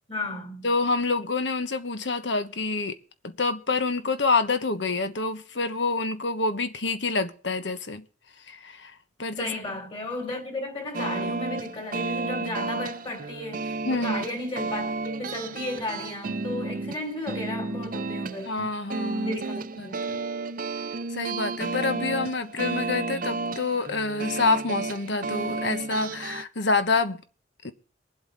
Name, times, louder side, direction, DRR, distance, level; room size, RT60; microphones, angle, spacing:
voice 1, 0.1-0.7 9.4-18.5 19.2-20.0, left 2 dB, 30° left, 3.4 m, -34 dB
voice 2, 0.6-3.0 3.2-8.0 8.5-8.9 9.2-9.5 13.9-14.2 18.4-19.4 19.8-20.2 21.1-27.2 27.6-27.7, left 3 dB, 70° left, 1.2 m, -27 dB
sound 1, 10.9-26.4, right 3 dB, 45° right, 0.6 m, -32 dB
23.0 x 8.0 x 4.0 m
head